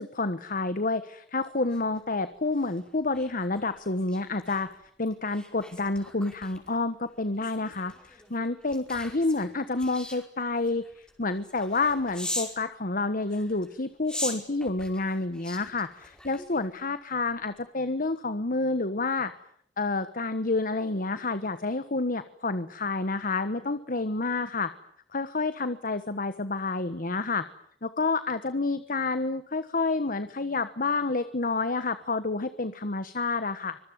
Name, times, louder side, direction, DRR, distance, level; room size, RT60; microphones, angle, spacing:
voice 1, 0.0-4.7 5.0-19.3 19.8-24.7 25.1-27.5 27.8-33.8, left 3 dB, 50° left, 12 dB, 1.3 m, -29 dB
sound 1, 1.4-12.6 13.2-16.9 17.3-17.5, left 1 dB, 5° left, 5.2 m, -42 dB
25.5 x 22.5 x 9.6 m, 0.67 s
head